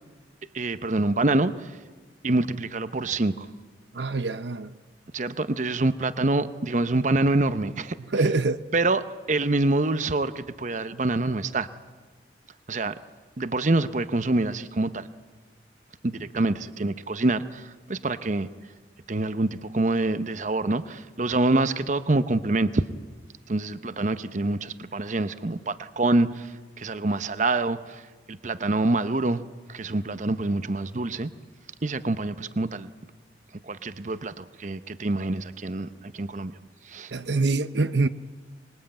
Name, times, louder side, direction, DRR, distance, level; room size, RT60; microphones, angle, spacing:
voice 1, 0.5-1.8 2.2-3.5 5.1-8.0 8.7-11.7 12.7-13.0 13.4-15.1 16.0-18.5 19.1-22.9 23.5-28.0 28.3-29.4 29.7-31.3 31.8-32.9 33.6-36.5 36.8-37.1, right 2 dB, 40° right, 0.8 m, -26 dB
voice 2, 3.9-4.7 8.0-8.6 37.1-38.1, right 3 dB, 75° right, 0.8 m, -25 dB
25.0 x 21.5 x 8.9 m
head